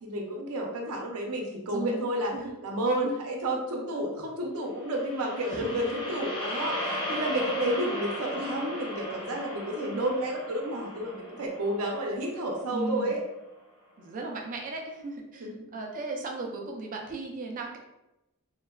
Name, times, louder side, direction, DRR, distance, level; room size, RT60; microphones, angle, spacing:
voice 1, 0.0-2.3 2.6-6.8 7.1-13.2 15.4-15.5, right 1 dB, 80° right, 0 dB, 0.6 m, -31 dB
voice 2, 1.7-2.5 5.5-6.0 6.8-7.1 12.7-13.2 14.0-17.8, right 3 dB, 40° right, 1 dB, 0.4 m, -36 dB
sound 1, 4.8-13.1, left 1 dB, 20° left, 0.6 m, -37 dB
3.1 x 2.1 x 2.2 m, 0.94 s
head